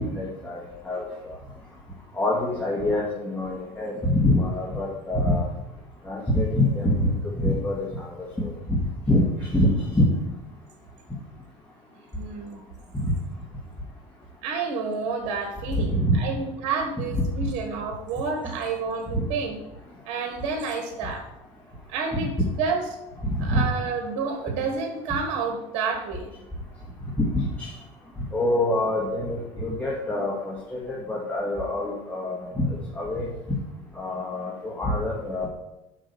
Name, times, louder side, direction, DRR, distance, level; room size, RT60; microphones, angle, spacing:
voice 1, 0.0-1.4 2.1-5.5 6.0-8.8 9.1-9.7 13.0-13.1 15.7-16.1 18.4-18.5 19.1-19.2 22.1-22.3 23.2-23.6 27.3-27.7 28.3-33.3 33.9-35.5, left 1 dB, 10° left, -5 dB, 2.0 m, -26 dB
voice 2, 12.1-12.6 14.4-19.6 20.0-21.2 21.9-22.9 23.4-26.3, right 4 dB, 65° right, 3 dB, 1.4 m, -29 dB
6.3 x 5.0 x 6.7 m, 0.93 s
supercardioid pair, 100°, 14 cm